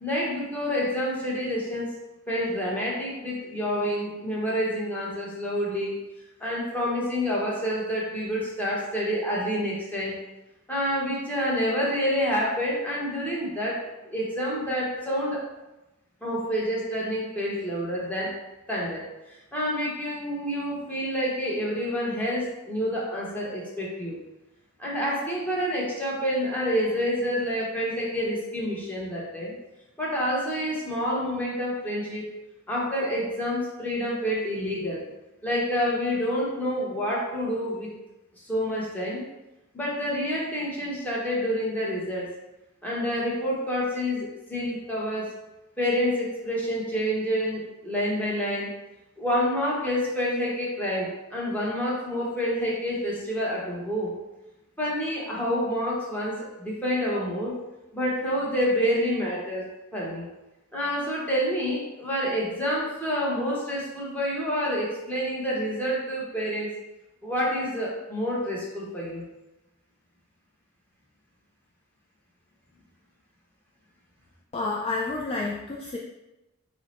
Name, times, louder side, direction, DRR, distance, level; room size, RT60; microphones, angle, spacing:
voice 1, 0.0-1.9 2.3-6.0 6.4-10.1 10.7-15.4 16.2-18.4 18.7-24.2 24.8-29.5 30.0-32.3 32.7-35.0 35.4-37.9 38.5-39.2 39.7-42.3 42.8-45.3 45.8-48.7 49.2-54.1 54.8-57.6 57.9-59.6 59.9-60.3 60.7-66.7 67.2-69.2, equal, 10° left, -6 dB, 1.0 m, -28 dB
voice 2, 74.5-76.0, left 3 dB, 30° left, -2 dB, 0.3 m, -29 dB
4.6 x 2.1 x 4.2 m, 1.0 s
head